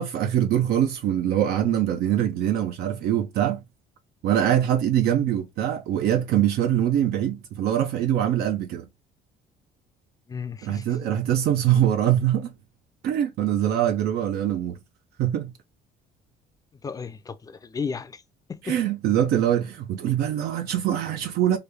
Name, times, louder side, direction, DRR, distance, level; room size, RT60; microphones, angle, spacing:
voice 1, 0.0-3.6 4.2-8.8 10.6-12.5 13.0-14.8 15.2-15.5 18.6-21.6, right 11 dB, 70° right, 0.5 m, -23 dB
voice 2, 10.3-11.0 16.7-18.2 18.5-18.8, left 5 dB, 20° left, 0.4 m, -34 dB
3.2 x 2.2 x 3.3 m
cardioid pair, 110°, 17 cm